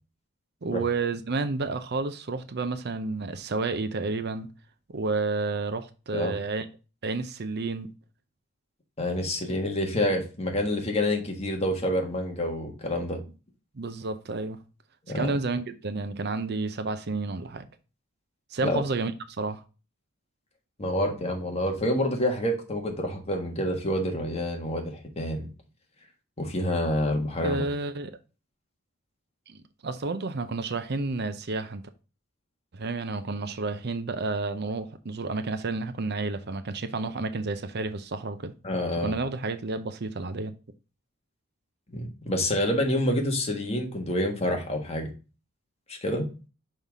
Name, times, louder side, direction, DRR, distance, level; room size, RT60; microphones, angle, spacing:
voice 1, 0.6-4.5 4.9-6.7 7.0-7.9 13.7-14.6 15.1-17.7 18.5-19.6 27.4-28.2 29.5-31.8 32.7-38.5 39.0-40.6, right 3 dB, 50° right, 0.6 m, -30 dB
voice 2, 9.0-13.2 15.1-15.4 18.6-18.8 20.8-25.5 26.4-27.6 38.6-39.1 41.9-45.1 45.9-46.3, left 1 dB, 30° left, 1.5 m, -28 dB
5.7 x 5.4 x 3.5 m
head